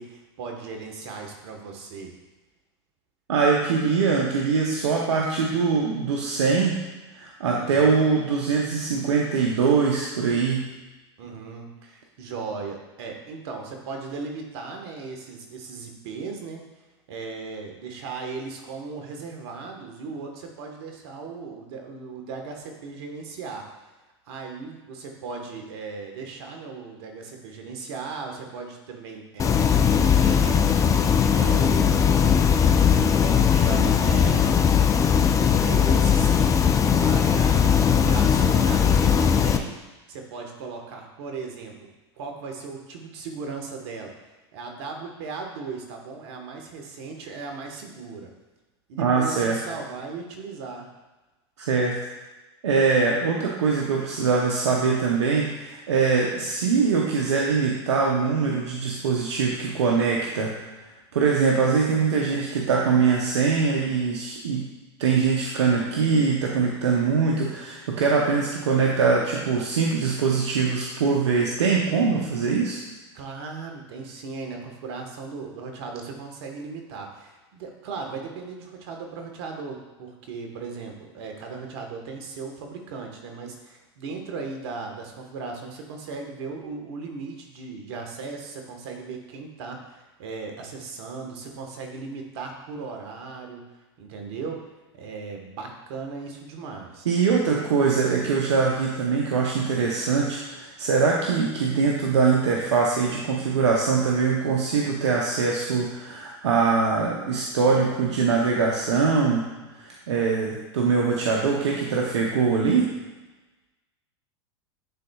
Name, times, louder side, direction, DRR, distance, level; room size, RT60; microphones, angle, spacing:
voice 1, 0.0-2.2 7.5-8.0 11.2-16.6 17.1-23.7 24.3-30.6 31.3-32.5 33.2-34.5 35.6-36.5 36.9-39.7 40.1-44.2 44.5-48.3 48.9-50.9 73.1-93.7 94.0-94.6 94.9-97.1, right 4 dB, 65° right, 3 dB, 1.3 m, -37 dB
voice 2, 3.3-6.8 7.2-10.7 49.0-49.6 51.6-52.0 52.6-60.5 61.1-64.7 65.0-72.8 97.1-109.4 109.7-112.9, right 5 dB, 85° right, -2 dB, 0.8 m, -22 dB
sound 1, 29.4-39.6, left 7 dB, 20° left, 0.5 m, -19 dB
10.5 x 3.9 x 2.3 m, 1.1 s
hypercardioid pair, 100°, 14 cm